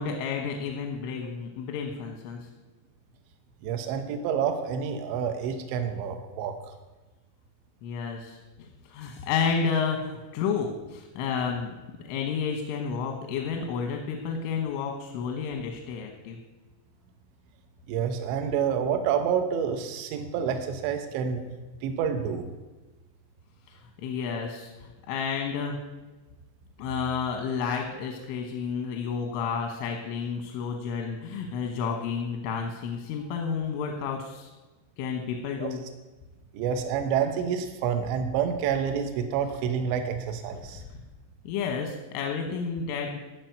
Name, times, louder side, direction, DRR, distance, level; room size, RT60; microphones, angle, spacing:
voice 1, 0.0-2.5 7.8-11.7 12.0-16.4 23.7-25.8 26.8-34.5 35.0-35.8 40.9-41.0 41.5-43.2, left 6 dB, 90° left, 3 dB, 3.7 m, -31 dB
voice 2, 3.6-6.7 17.9-21.4 21.8-22.4 35.6-35.7 36.5-40.8, right 7 dB, 75° right, 6 dB, 3.1 m, -28 dB
15.0 x 6.3 x 9.3 m, 1.2 s
omnidirectional pair, 5.5 m